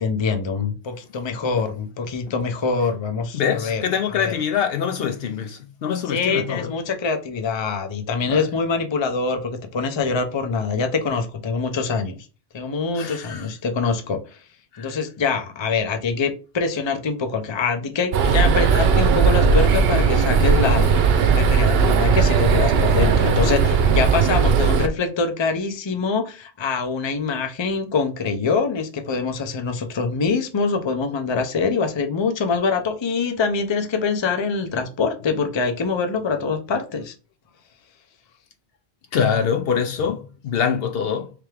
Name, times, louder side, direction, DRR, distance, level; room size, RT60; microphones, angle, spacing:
voice 1, 0.0-3.8 4.2-4.3 6.1-12.2 12.5-14.4 14.8-37.1, left 4 dB, 30° left, 0.5 m, -24 dB
voice 2, 3.3-6.7 8.3-8.5 13.0-13.5 14.7-15.0 39.1-41.3, left 7 dB, 65° left, 0.7 m, -24 dB
sound 1, 18.1-24.9, right 5 dB, 70° right, 0.8 m, -17 dB
3.4 x 3.3 x 3.2 m
omnidirectional pair, 1.1 m